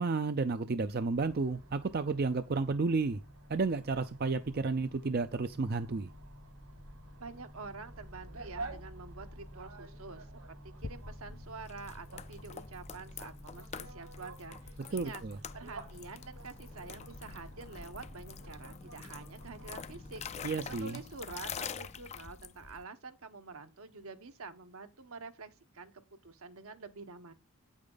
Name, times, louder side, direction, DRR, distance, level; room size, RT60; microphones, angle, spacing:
voice 1, 0.0-3.2 3.5-6.1 14.9-15.4 20.4-21.0, right 4 dB, 45° right, 0.5 m, -32 dB
sound 1, 1.1-20.8, right 1 dB, 90° right, 3.6 m, -50 dB
voice 2, 7.2-15.2 15.5-27.3, right 4 dB, 70° right, 1.1 m, -48 dB
sound 2, 10.8-22.8, left 6 dB, 30° left, 0.4 m, -46 dB
9.0 x 8.6 x 3.9 m
head